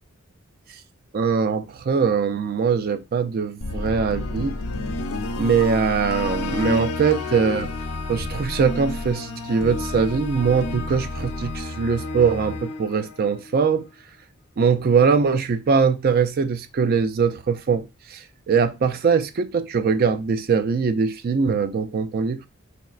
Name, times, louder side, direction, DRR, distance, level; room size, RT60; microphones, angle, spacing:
voice 1, 1.1-4.6 5.4-7.7 8.1-13.9 14.6-22.4, right 5 dB, 45° right, 0.3 m, -22 dB
sound 1, 3.6-13.8, left 2 dB, 80° left, 0.5 m, -30 dB
4.2 x 3.0 x 2.4 m
head